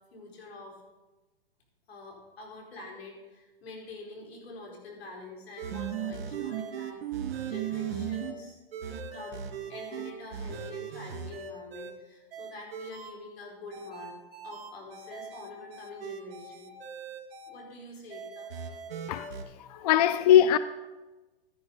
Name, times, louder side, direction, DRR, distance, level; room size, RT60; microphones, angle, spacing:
voice 1, 0.1-0.8 1.9-8.6 8.9-14.1 14.4-16.7 17.5-18.5, left 2 dB, 80° left, 4.6 m, -46 dB
sound 1, 5.6-8.3 8.7-11.9 12.3-13.1 13.7-17.5 18.1-19.4, right 8 dB, 65° right, 2.5 m, -38 dB
voice 2, 19.1-20.6, left 10 dB, 40° left, 0.4 m, -22 dB
13.0 x 10.5 x 4.1 m
hypercardioid pair, 140°, 30 cm